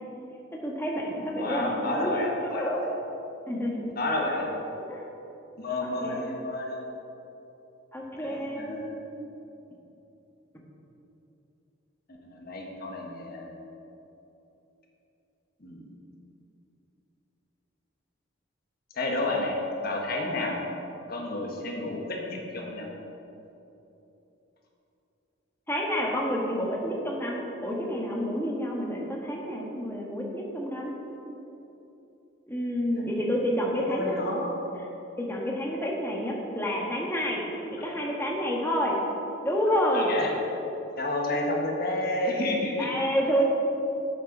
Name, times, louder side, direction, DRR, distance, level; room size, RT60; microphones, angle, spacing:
voice 1, 0.6-2.8 3.5-3.9 4.9-5.0 5.8-6.4 7.9-8.8 25.7-30.9 32.5-34.2 35.2-39.0 39.4-40.1 42.8-43.4, equal, 10° left, -2 dB, 1.3 m, -29 dB
voice 2, 1.4-2.9 3.8-4.5 5.6-6.8 8.2-9.0 12.2-13.5 15.6-15.9 18.9-19.6 19.8-20.6 21.1-22.9 32.9-33.1 33.8-34.5 37.8-38.0 39.9-40.3 41.0-42.9, left 2 dB, 50° left, 0 dB, 1.4 m, -30 dB
8.1 x 6.7 x 5.9 m, 3.0 s
head